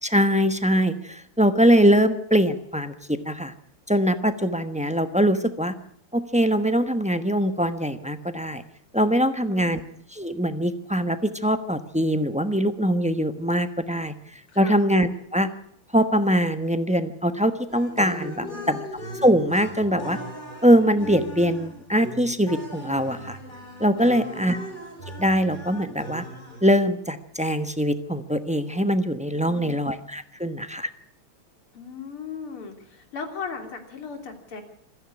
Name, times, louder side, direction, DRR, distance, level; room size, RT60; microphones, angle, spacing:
voice 1, 0.0-3.5 3.9-5.7 6.1-8.6 8.9-9.8 10.1-15.5 15.9-18.8 19.2-20.2 20.6-23.4 23.8-24.6 25.2-26.2 26.6-30.9, equal, 5° right, 9 dB, 0.5 m, -22 dB
voice 2, 9.4-9.7 14.5-14.8 18.3-18.7 24.1-24.5 29.5-29.8 31.7-34.6, left 5 dB, 75° left, 5 dB, 4.0 m, -37 dB
sound 1, 17.7-26.9, equal, 20° left, 5.1 m, -38 dB
26.5 x 10.5 x 9.7 m, 0.69 s
omnidirectional pair, 2.4 m